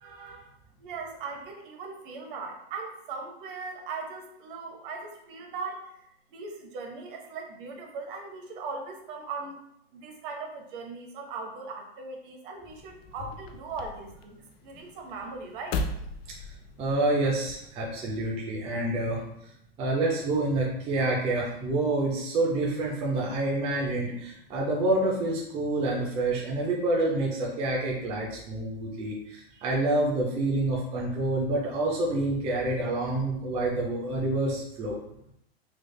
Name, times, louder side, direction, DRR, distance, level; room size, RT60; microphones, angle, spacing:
voice 1, 0.0-0.4 16.8-19.2 19.8-35.0, right 2 dB, 20° right, -3 dB, 0.5 m, -28 dB
voice 2, 0.8-5.9 6.3-9.6 9.9-15.8, right 4 dB, 55° right, 2 dB, 0.8 m, -39 dB
sound 1, 12.7-17.7, left 2 dB, 65° left, 0.5 m, -38 dB
3.3 x 3.2 x 2.2 m, 0.76 s
supercardioid pair, 140°, 32 cm